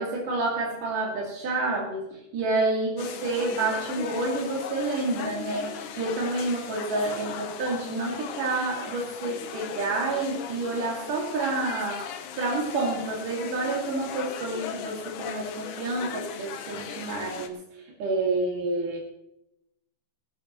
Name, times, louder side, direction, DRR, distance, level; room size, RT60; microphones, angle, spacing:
voice 1, 0.0-12.1 12.4-19.0, right 2 dB, 85° right, -2 dB, 4.0 m, -29 dB
sound 1, 3.0-17.5, left 8 dB, 80° left, 2.6 m, -38 dB
19.5 x 14.0 x 3.1 m, 0.85 s
omnidirectional pair, 3.6 m